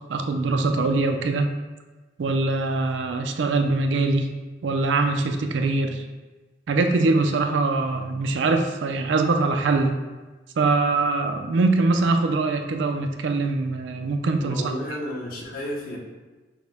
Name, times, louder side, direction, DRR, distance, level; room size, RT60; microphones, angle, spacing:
voice 1, 0.1-1.5 2.2-4.3 4.6-6.0 6.7-10.0 10.6-14.7, right 3 dB, 65° right, 6 dB, 0.4 m, -23 dB
voice 2, 14.4-16.0, equal, 50° left, -1 dB, 0.8 m, -32 dB
6.2 x 2.1 x 3.4 m, 1.2 s
head